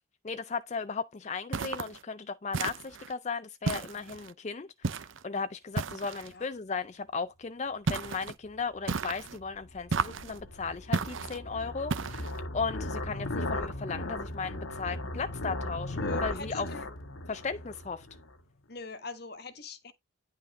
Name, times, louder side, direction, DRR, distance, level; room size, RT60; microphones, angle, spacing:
voice 1, 0.2-12.3 12.5-16.7 17.3-18.1, left 5 dB, 35° left, 0.4 m, -36 dB
Footsteps Boots Gritty Ground (Gravel), 1.5-2.0 2.5-3.1 3.7-4.3 4.8-5.2 5.8-6.3 7.9-8.4 8.9-9.4 9.9-10.4 10.9-11.4 11.9-12.4, right 4 dB, 75° right, 0.7 m, -33 dB
sound 1, 8.8-18.3, left 1 dB, 85° left, 1.5 m, -37 dB
voice 2, 15.9-16.9 18.7-19.9, left 3 dB, 50° left, 1.4 m, -41 dB
10.5 x 5.8 x 3.7 m
head